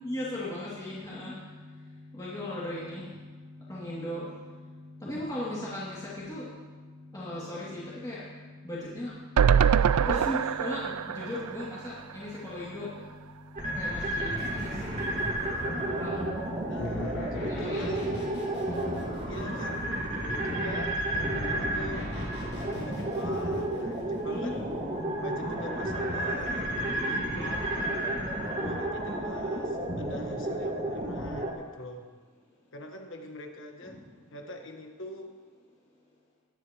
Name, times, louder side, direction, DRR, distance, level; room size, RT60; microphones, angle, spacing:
voice 1, 0.0-1.3 2.2-3.0 3.7-4.2 5.0-6.0 6.3-6.4 7.1-8.2 8.6-9.1 10.0-12.9 13.8-14.9 15.8-16.2 17.5-17.8 19.4-19.5 24.2-24.6 27.4-27.9, left 1 dB, 15° left, -9 dB, 2.6 m, -37 dB
sound 1, 9.4-12.6 13.0-13.1 13.3-13.4, right 7 dB, 90° right, 0.4 m, -25 dB
sound 2, 13.6-31.5, right 1 dB, 35° right, 2.1 m, -32 dB
sound 3, 14.4-15.6 16.8-19.8 21.1-24.3, left 1 dB, 70° left, 4.3 m, -40 dB
voice 2, 16.7-18.3 19.3-19.8 20.2-21.1 21.5-22.1 22.6-24.7 25.2-27.6 28.5-32.1 32.7-34.0 34.3-35.3, left 1 dB, 55° left, 4 dB, 1.3 m, -43 dB
21.0 x 10.0 x 3.1 m, 1.4 s
head